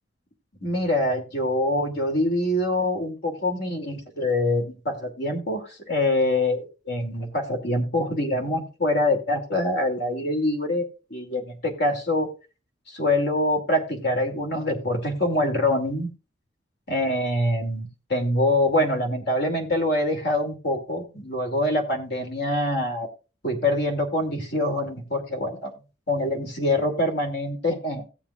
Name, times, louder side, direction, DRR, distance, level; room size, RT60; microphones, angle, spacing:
voice 1, 0.6-12.3 12.9-16.1 16.9-23.1 23.4-25.7 26.1-28.0, left 1 dB, 60° left, 3 dB, 2.7 m, -25 dB
17.5 x 7.2 x 2.4 m, 0.32 s
head